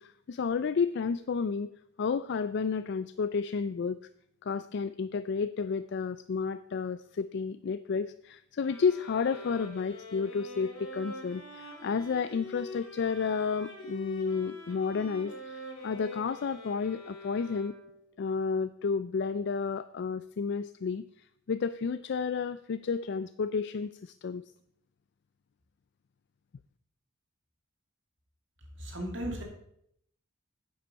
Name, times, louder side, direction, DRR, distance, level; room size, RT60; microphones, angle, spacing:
voice 1, 0.0-1.7 2.0-4.0 4.4-17.7 18.2-21.0 21.5-24.4, left 5 dB, 55° left, 12 dB, 0.4 m, -31 dB
sound 1, 8.6-18.1, left 1 dB, 70° left, 3.0 m, -45 dB
voice 2, 28.8-29.4, right 1 dB, 60° right, 1 dB, 2.5 m, -35 dB
10.0 x 7.9 x 5.4 m, 0.71 s
head